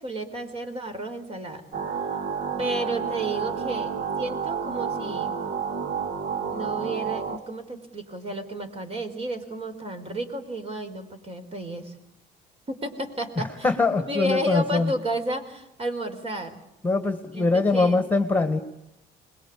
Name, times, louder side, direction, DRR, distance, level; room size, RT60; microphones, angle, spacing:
voice 1, 0.0-1.6 2.6-5.3 6.5-11.9 12.7-13.7 14.1-16.6 17.3-18.0, right 1 dB, 35° right, 7 dB, 4.6 m, -32 dB
sound 1, 1.7-7.4, right 6 dB, 55° right, 2.3 m, -30 dB
voice 2, 13.4-14.9 16.8-18.6, left 3 dB, 10° left, 8 dB, 2.0 m, -23 dB
26.0 x 21.5 x 8.7 m, 0.84 s
cardioid pair, 110°, 17 cm